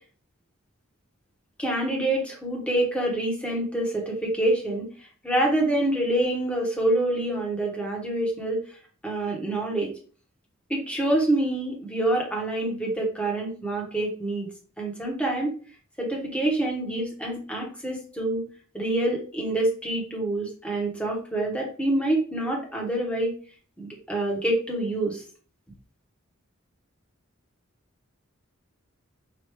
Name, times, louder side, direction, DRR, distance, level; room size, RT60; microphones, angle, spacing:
voice 1, 1.6-4.9 5.2-8.6 9.0-9.9 10.7-14.5 14.8-15.5 16.0-18.4 18.7-23.3 23.8-25.2, right 1 dB, 5° left, -1 dB, 1.2 m, -26 dB
5.0 x 2.6 x 3.2 m, 0.41 s
head